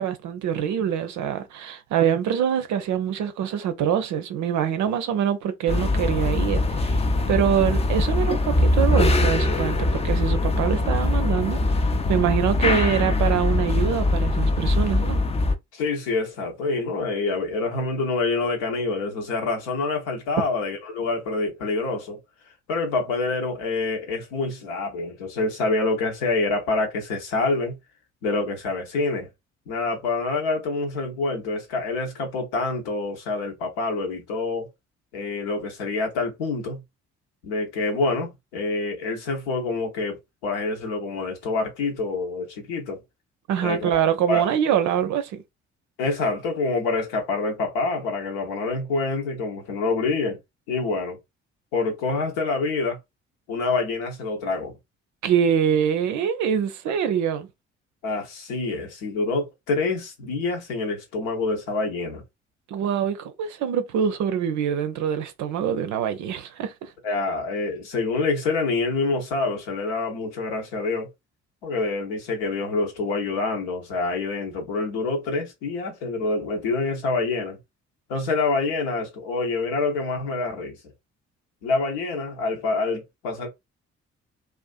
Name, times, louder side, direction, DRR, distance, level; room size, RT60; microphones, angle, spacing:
voice 1, 0.0-7.0 7.3-15.2 43.5-45.4 55.2-57.5 62.7-66.9, right 8 dB, 55° right, 0.5 m, -24 dB
sound 1, 5.7-15.6, left 2 dB, 20° left, 0.4 m, -22 dB
voice 2, 15.7-22.2 22.7-27.8 28.2-29.3 29.7-34.7 35.1-36.8 37.4-40.2 40.4-43.0 43.6-44.0 44.3-44.4 46.0-50.4 50.7-51.2 51.7-53.0 53.5-54.8 58.0-62.2 67.0-71.1 71.6-77.6 78.1-80.8 81.6-83.5, left 3 dB, 75° left, 0.9 m, -26 dB
2.4 x 2.3 x 2.3 m
figure-of-eight pair, 45°, 35 cm